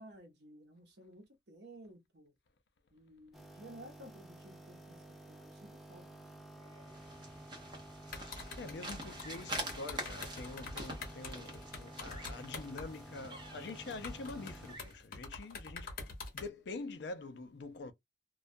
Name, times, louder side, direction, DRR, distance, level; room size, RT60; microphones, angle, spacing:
voice 1, 0.0-2.3 2.9-6.3 6.5-7.2, right 1 dB, 65° right, 0.8 m, -55 dB
sound 1, 3.3-14.8, right 1 dB, ahead, 0.4 m, -53 dB
sound 2, 6.7-15.0, right 1 dB, 25° right, 0.7 m, -46 dB
sound 3, 8.1-13.0 13.4-13.5 13.9-16.5, left 3 dB, 50° left, 0.8 m, -45 dB
voice 2, 8.2-15.9 16.3-17.9, left 3 dB, 65° left, 0.4 m, -45 dB
2.3 x 2.2 x 2.5 m
head